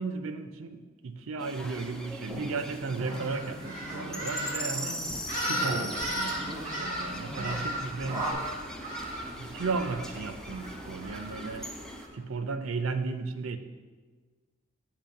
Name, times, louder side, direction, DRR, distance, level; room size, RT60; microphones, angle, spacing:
voice 1, 0.0-8.5 9.4-11.7 12.1-13.6, right 4 dB, 75° right, 9 dB, 0.5 m, -35 dB
sound 1, 1.4-12.1, equal, 5° left, 0.5 m, -41 dB
sound 2, 2.3-8.3, right 1 dB, 10° right, 1.0 m, -40 dB
sound 3, 3.0-12.1, right 1 dB, 45° right, 2.1 m, -37 dB
8.5 x 3.0 x 6.4 m, 1.5 s
head